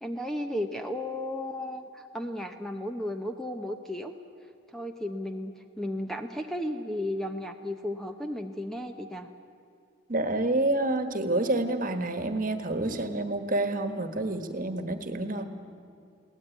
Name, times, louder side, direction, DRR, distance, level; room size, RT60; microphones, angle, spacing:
voice 1, 0.0-4.1 4.7-9.3, left 1 dB, ahead, 5 dB, 0.8 m, -34 dB
voice 2, 10.1-15.4, right 2 dB, 45° right, 8 dB, 1.5 m, -28 dB
23.0 x 17.5 x 9.4 m, 2.4 s
head